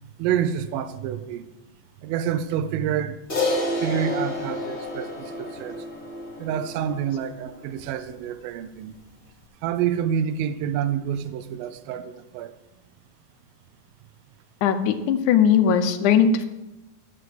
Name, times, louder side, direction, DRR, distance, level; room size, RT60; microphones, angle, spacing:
voice 1, 0.2-1.5 2.0-3.2 3.8-5.8 6.4-8.9 9.6-12.5, right 9 dB, 85° right, 12 dB, 2.4 m, -28 dB
Crash cymbal, 3.3-7.9, left 2 dB, 25° left, 1.8 m, -30 dB
voice 2, 14.6-16.5, left 7 dB, 75° left, 7 dB, 1.9 m, -19 dB
12.5 x 4.6 x 7.7 m, 1.0 s
omnidirectional pair, 4.2 m